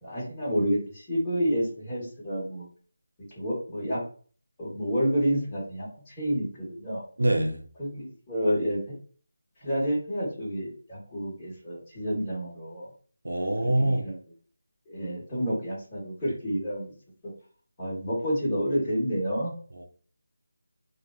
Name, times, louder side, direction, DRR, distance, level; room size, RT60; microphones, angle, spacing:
voice 1, 0.0-2.7 3.3-4.0 4.6-7.0 7.8-8.9 9.6-12.9 13.6-14.2 14.9-16.9 17.2-17.3 17.8-19.5, equal, 15° left, 1.5 m, -29 dB
voice 2, 7.2-7.6 13.2-14.0 19.8-19.9, right 1 dB, 90° right, 0.7 m, -24 dB
3.2 x 2.4 x 2.4 m
figure-of-eight pair, 170°, 0 cm